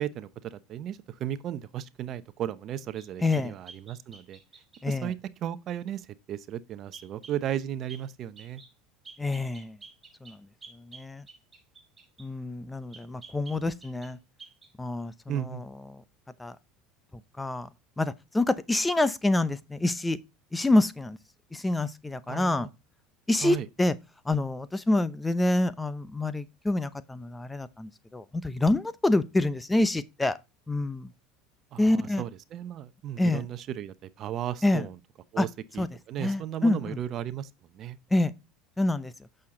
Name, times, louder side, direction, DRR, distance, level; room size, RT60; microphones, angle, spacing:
voice 1, 0.0-4.4 4.9-5.2 5.4-8.6 15.3-15.6 22.3-22.7 23.4-23.7 31.7-35.0 35.3-35.5 35.7-38.0, right 11 dB, 50° right, 0.8 m, -35 dB
sound 1, 3.0-4.9 6.9-7.4 7.9-8.1 8.4-8.7 9.0-12.3 12.9-14.1 14.4-14.7, right 4 dB, 20° right, 4.6 m, -50 dB
voice 2, 3.2-3.5 4.8-5.1 9.2-9.8 10.2-10.4 10.9-11.3 12.2-14.2 14.8-15.6 15.9-16.0 16.4-16.6 17.4-17.7 18.0-20.2 20.5-21.2 21.5-22.7 23.3-23.9 24.3-30.4 30.7-31.1 31.8-32.2 33.2-33.4 34.6-34.8 35.4-35.5 35.8-35.9 36.2-37.0 38.1-38.3 38.8-39.1, left 2 dB, 10° left, 0.7 m, -27 dB
8.4 x 6.6 x 3.8 m
hypercardioid pair, 90°, 0 cm